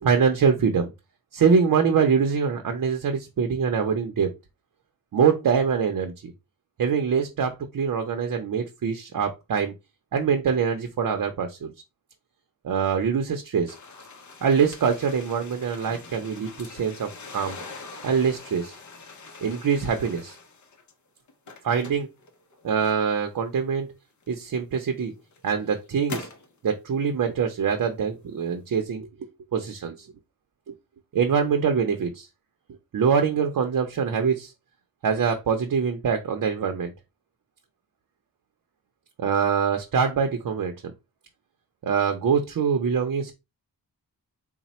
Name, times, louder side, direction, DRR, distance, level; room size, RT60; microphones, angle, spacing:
voice 1, 0.0-0.9 1.3-4.3 5.1-6.3 6.8-9.7 10.1-11.7 12.6-13.7 14.4-17.6 18.0-18.8 19.4-20.4 21.6-22.1 22.6-23.9 24.3-25.1 25.4-26.3 26.6-30.1 31.1-32.3 32.9-34.5 35.0-36.9 39.2-40.9 41.8-43.3, right 6 dB, 55° right, 5 dB, 0.6 m, -24 dB
sound 1, 13.7-20.9 21.3-23.3 24.2-24.3 25.0-26.5, left 3 dB, 50° left, 0.7 m, -43 dB
4.0 x 2.1 x 4.2 m, 0.24 s
wide cardioid pair, 115°, 38 cm